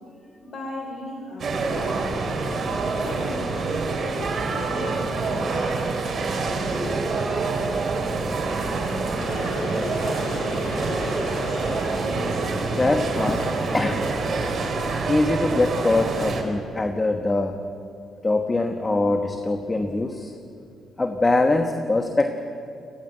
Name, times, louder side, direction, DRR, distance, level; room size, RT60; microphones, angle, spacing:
voice 1, 0.4-2.0 3.0-5.4, left 1 dB, 55° left, 1 dB, 3.7 m, -36 dB
sound 1, 1.4-16.4, right 3 dB, 50° right, 3.7 m, -26 dB
Water / Boiling, 9.2-14.3, left 3 dB, 70° left, 2.6 m, -36 dB
voice 2, 12.7-13.5 13.7-14.1 15.1-17.6 18.2-20.3 21.0-22.3, left 2 dB, 20° left, 5 dB, 1.3 m, -23 dB
22.0 x 16.0 x 8.0 m, 2.5 s
cardioid pair, 90°, 0 cm